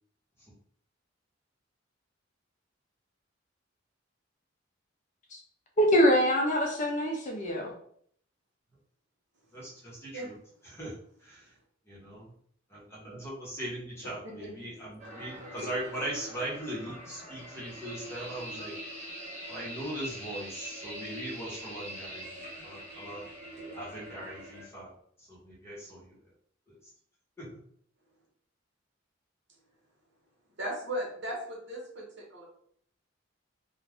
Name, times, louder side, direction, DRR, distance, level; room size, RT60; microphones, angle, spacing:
voice 1, 5.8-7.7, equal, 40° left, 1 dB, 0.5 m, -24 dB
voice 2, 9.5-10.4 10.6-11.6 11.8-12.3 12.7-18.8 19.5-23.2 23.7-26.3 26.7-26.9 27.4-27.6, right 1 dB, 15° left, -5 dB, 1.0 m, -40 dB
voice 3, 14.0-14.5 15.6-15.7 30.5-32.4, equal, 65° right, -2 dB, 1.0 m, -37 dB
sound 1, 15.0-24.6, equal, 35° right, 1.0 m, -43 dB
2.4 x 2.2 x 3.4 m, 0.63 s
head